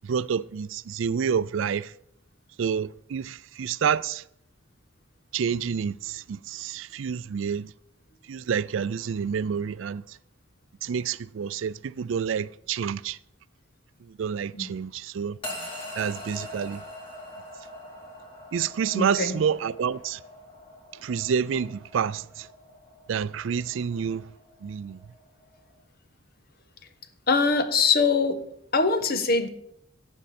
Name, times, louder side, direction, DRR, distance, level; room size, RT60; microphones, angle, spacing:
voice 1, 0.0-1.9 2.6-4.2 5.3-7.7 8.3-10.2 10.8-13.2 14.0-15.4 16.0-16.8 18.5-20.2 21.0-22.5 23.1-24.3 24.6-25.0, right 7 dB, 70° right, 0.4 m, -28 dB
sound 1, 15.4-25.8, left 1 dB, 25° left, 3.6 m, -43 dB
voice 2, 18.9-19.4 27.3-28.4 28.7-29.5, left 4 dB, 50° left, 1.2 m, -23 dB
14.5 x 8.9 x 4.3 m
head